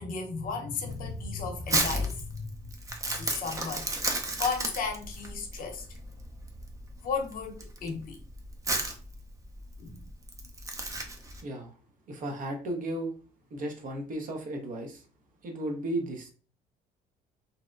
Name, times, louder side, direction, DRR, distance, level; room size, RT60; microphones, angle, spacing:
voice 1, 0.0-2.4 3.1-5.9 7.0-8.2 9.8-10.0, left 5 dB, 55° left, 0.7 m, -34 dB
Crumpling crinkling, 0.9-11.4, right 2 dB, 20° right, 0.5 m, -33 dB
voice 2, 11.4-11.7 12.1-13.1 13.5-15.0 15.4-16.3, right 1 dB, 50° right, 0.8 m, -34 dB
2.7 x 2.1 x 2.5 m
cardioid pair, 110°, 17 cm